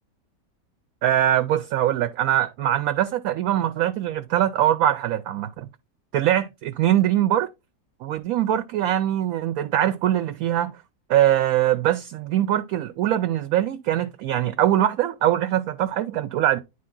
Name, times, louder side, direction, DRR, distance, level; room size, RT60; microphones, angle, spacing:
voice 1, 1.0-5.7 6.1-7.5 8.0-10.8 11.1-16.6, right 12 dB, 70° right, 0.9 m, -22 dB
9.8 x 3.6 x 3.7 m
omnidirectional pair, 1.8 m